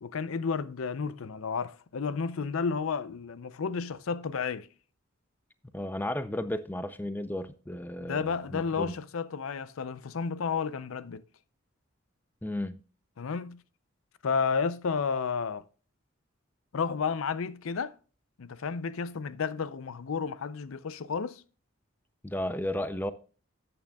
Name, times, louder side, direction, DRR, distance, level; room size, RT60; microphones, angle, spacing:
voice 1, 0.0-4.7 8.0-11.2 13.2-13.6 14.2-15.6 16.7-17.9 18.4-21.4, left 5 dB, 80° left, 0.5 m, -32 dB
voice 2, 5.7-8.9 12.4-12.8 22.2-23.1, left 1 dB, 10° left, 0.4 m, -34 dB
13.0 x 8.7 x 2.3 m
head